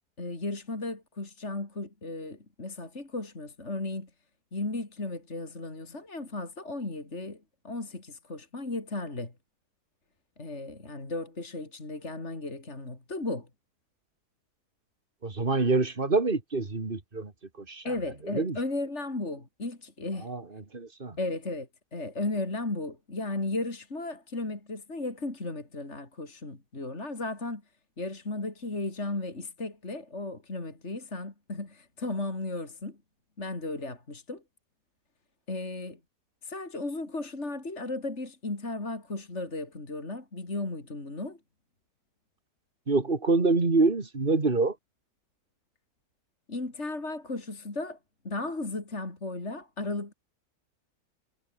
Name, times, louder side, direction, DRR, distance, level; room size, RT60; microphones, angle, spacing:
voice 1, 0.2-4.1 4.5-9.3 10.4-13.5 17.8-20.3 21.2-27.6 28.0-33.0 33.4-34.4 35.5-36.0 36.4-41.4 46.5-48.0 48.2-50.1, left 2 dB, 45° left, 4.3 m, -35 dB
voice 2, 15.2-17.3 17.6-17.9 18.3-18.6 20.2-21.2 42.9-44.8, right 3 dB, 35° right, 2.6 m, -26 dB
omnidirectional pair, 1.7 m